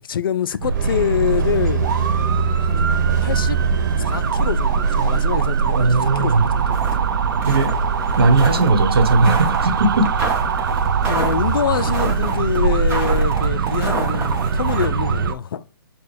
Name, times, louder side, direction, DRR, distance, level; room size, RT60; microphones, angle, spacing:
voice 1, 0.0-1.8 2.6-3.0 3.2-3.6 4.0-7.0 11.1-15.6, left 8 dB, 65° left, 0.4 m, -25 dB
sound 1, 0.6-15.3, right 5 dB, 65° right, 0.5 m, -21 dB
sound 2, 0.7-12.8, right 3 dB, 45° right, 1.1 m, -37 dB
voice 2, 5.7-6.5 7.5-7.7 8.2-10.1, right 3 dB, 80° right, 1.1 m, -17 dB
sound 3, 6.7-7.0 7.3-14.9, right 3 dB, 15° right, 0.8 m, -29 dB
6.6 x 2.3 x 3.3 m
hypercardioid pair, 155°, 12 cm